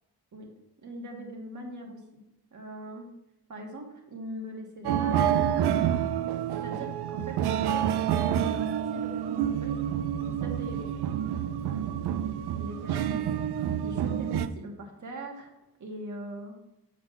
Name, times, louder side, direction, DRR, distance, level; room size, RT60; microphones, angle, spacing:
voice 1, 0.8-2.0 2.5-3.1 3.5-5.7 6.5-9.8 10.3-10.9 11.6-11.8 12.5-13.4 13.8-15.5 15.8-16.5, right 1 dB, 50° right, 1 dB, 1.7 m, -41 dB
sound 1, 4.8-14.5, right 10 dB, 90° right, 0.5 m, -28 dB
7.6 x 4.0 x 5.7 m, 0.93 s
cardioid pair, 105°, 38 cm